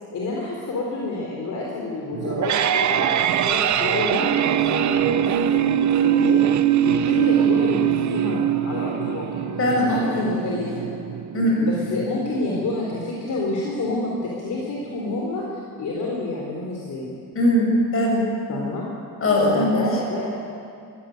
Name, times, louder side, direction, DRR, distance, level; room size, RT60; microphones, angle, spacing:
voice 1, 0.1-6.4 6.8-9.4 9.9-10.9 11.6-17.1 18.5-18.8 19.4-20.3, left 2 dB, 55° left, -2 dB, 4.2 m, -29 dB
sound 1, 2.1-13.1, right 10 dB, 50° right, 0.9 m, -22 dB
voice 2, 9.6-10.3 11.3-11.7 17.4-18.2 19.2-19.8, left 1 dB, 35° left, -1 dB, 7.4 m, -20 dB
25.5 x 16.5 x 9.5 m, 2.4 s
cardioid pair, 165°, 37 cm